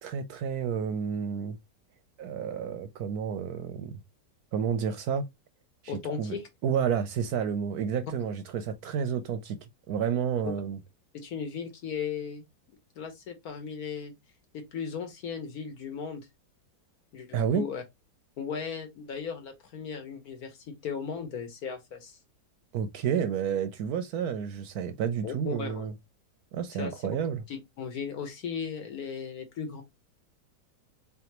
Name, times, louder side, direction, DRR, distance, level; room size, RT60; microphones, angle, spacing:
voice 1, 0.0-1.6 2.2-3.9 4.5-5.2 5.8-6.4 6.6-9.6 9.9-10.8 17.3-17.6 22.7-25.9 26.5-27.4, right 7 dB, 70° right, 1.0 m, -30 dB
voice 2, 5.9-6.5 10.4-10.5 11.1-12.4 13.0-14.1 14.5-16.3 17.1-17.8 18.4-22.2 25.2-25.9 26.7-27.0 27.5-29.8, left 6 dB, 60° left, 1.4 m, -36 dB
3.7 x 3.4 x 2.9 m
omnidirectional pair, 1.9 m